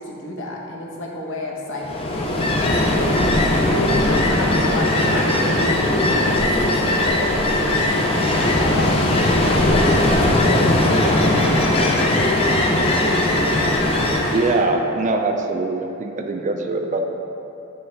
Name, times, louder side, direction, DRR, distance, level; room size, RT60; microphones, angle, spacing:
voice 1, 0.0-3.2 3.7-6.6 6.9-8.9 9.5-13.4, left 1 dB, 60° left, -2 dB, 0.9 m, -29 dB
Ocean, 1.8-14.6, left 1 dB, 25° left, 0.5 m, -19 dB
voice 2, 14.3-17.0, right 3 dB, 35° right, 4 dB, 0.4 m, -22 dB
9.2 x 3.2 x 3.9 m, 2.9 s
head